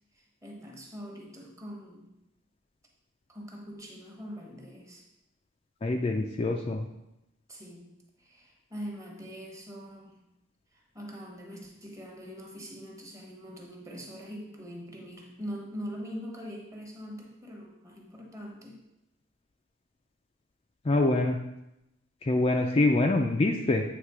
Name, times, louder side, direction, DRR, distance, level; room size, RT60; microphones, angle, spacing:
voice 1, 0.4-2.1 3.3-5.0 7.5-7.9 8.2-10.2 10.9-18.8, equal, 15° right, 0 dB, 1.1 m, -42 dB
voice 2, 5.8-6.9 20.9-21.4 22.2-23.8, left 2 dB, 30° left, 2 dB, 0.4 m, -25 dB
8.1 x 3.3 x 4.8 m, 0.88 s
head